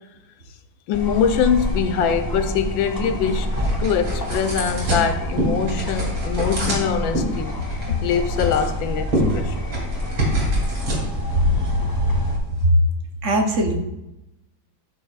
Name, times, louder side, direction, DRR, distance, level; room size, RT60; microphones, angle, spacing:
voice 1, 0.9-9.5, left 7 dB, 85° left, 1.5 m, -23 dB
sound 1, 0.9-12.4, left 1 dB, 30° left, 0.3 m, -27 dB
sound 2, 2.5-12.7, right 1 dB, 85° right, 3.6 m, -28 dB
voice 2, 13.2-13.7, right 2 dB, 50° right, 0.9 m, -19 dB
13.0 x 6.1 x 2.4 m
omnidirectional pair, 2.1 m